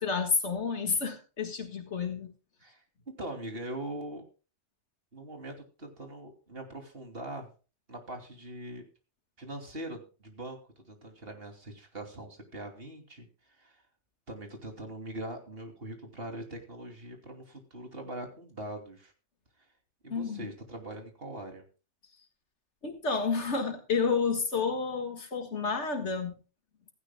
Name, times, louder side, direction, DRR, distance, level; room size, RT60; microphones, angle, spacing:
voice 1, 0.0-2.3 20.1-20.4 22.8-26.4, left 5 dB, 85° left, 5 dB, 2.0 m, -30 dB
voice 2, 2.6-4.2 5.1-7.5 7.9-8.8 9.4-13.8 14.3-19.1 20.0-21.7, right 1 dB, 55° right, 4 dB, 3.0 m, -42 dB
16.0 x 16.0 x 2.2 m, 0.34 s
omnidirectional pair, 1.2 m